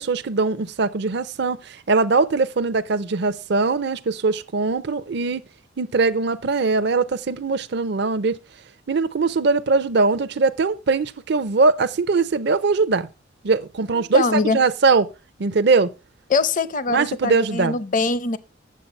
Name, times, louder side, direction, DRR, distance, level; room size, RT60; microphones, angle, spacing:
voice 1, 0.0-5.5 5.8-8.4 8.9-13.1 13.4-15.1 15.4-15.9 16.9-17.8, right 4 dB, 60° right, 0.5 m, -21 dB
voice 2, 13.9-14.6 16.3-18.4, left 4 dB, 40° left, 0.6 m, -23 dB
8.5 x 7.4 x 5.2 m
head